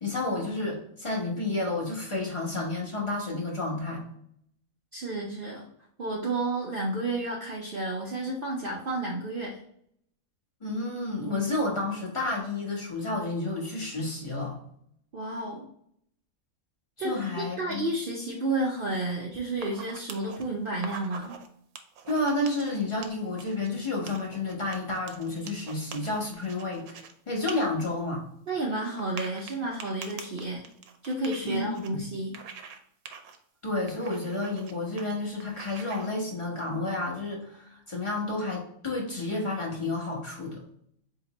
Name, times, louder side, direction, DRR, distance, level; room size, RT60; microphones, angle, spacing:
voice 1, 0.0-4.0 10.6-14.6 17.0-17.9 22.1-26.8 27.3-28.2 31.4-32.0 33.6-40.6, left 2 dB, 25° left, -2 dB, 0.9 m, -30 dB
voice 2, 4.9-5.7 6.0-9.6 15.1-15.7 17.0-21.4 28.5-30.6 31.0-32.3, right 2 dB, 50° right, -3 dB, 0.7 m, -31 dB
sound 1, 19.5-20.4 20.7-21.5 21.8-23.7 24.1-27.1 27.4-27.5 27.9-28.0 29.0-31.9 32.3-32.8 33.1-33.4 33.9-34.7 35.0-35.1 35.4-36.1, right 7 dB, 85° right, 1.1 m, -44 dB
4.2 x 2.9 x 2.9 m, 0.69 s
omnidirectional pair, 1.5 m